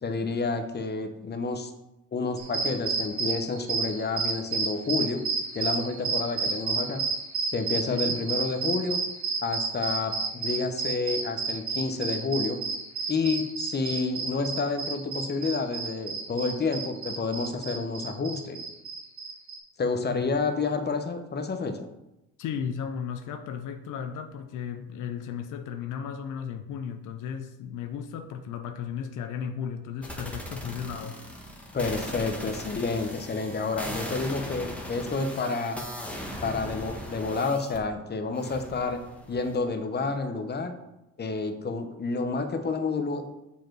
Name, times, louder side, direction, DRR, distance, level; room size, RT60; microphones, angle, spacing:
voice 1, 0.0-1.7 2.1-5.2 5.5-7.0 7.5-9.0 9.4-12.6 13.1-18.6 19.8-21.9 31.7-35.8 36.4-39.0 39.3-40.7 41.2-43.3, left 4 dB, 35° left, 7 dB, 1.0 m, -29 dB
sound 1, 2.4-19.6, right 5 dB, 75° right, 1.6 m, -30 dB
voice 2, 22.4-31.2, left 7 dB, 85° left, 7 dB, 0.6 m, -35 dB
sound 2, 30.0-37.8 38.4-39.6, equal, 5° left, 1.4 m, -39 dB
7.0 x 5.1 x 4.6 m, 0.92 s
cardioid pair, 90°, 30 cm